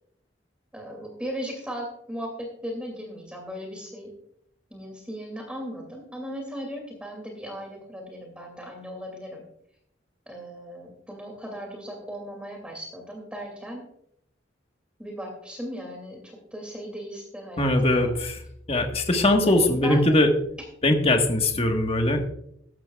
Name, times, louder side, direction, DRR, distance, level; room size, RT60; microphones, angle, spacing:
voice 1, 0.7-4.1 4.7-9.4 10.3-13.8 15.0-18.1 19.4-20.2, equal, 5° right, 1 dB, 2.5 m, -37 dB
voice 2, 17.6-18.4 18.7-20.3 20.8-22.3, left 1 dB, 35° left, 4 dB, 1.5 m, -21 dB
14.0 x 12.0 x 2.4 m, 0.71 s
head